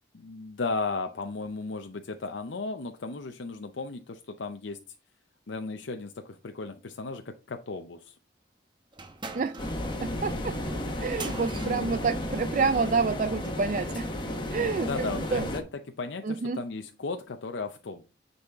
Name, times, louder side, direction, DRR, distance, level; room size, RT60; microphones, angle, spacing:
voice 1, 0.1-4.8 5.5-8.2 11.5-11.9 14.8-15.6 16.0-18.0, left 3 dB, 75° left, 6 dB, 0.6 m, -35 dB
sound 1, 8.9-13.1, right 3 dB, 25° right, 0.9 m, -44 dB
sound 2, 9.6-15.6, left 1 dB, 25° left, 1.2 m, -33 dB
voice 2, 10.0-10.5 11.0-14.1 14.5-15.4 16.2-16.6, right 4 dB, 40° right, 12 dB, 0.3 m, -28 dB
9.6 x 4.2 x 3.5 m, 0.32 s
head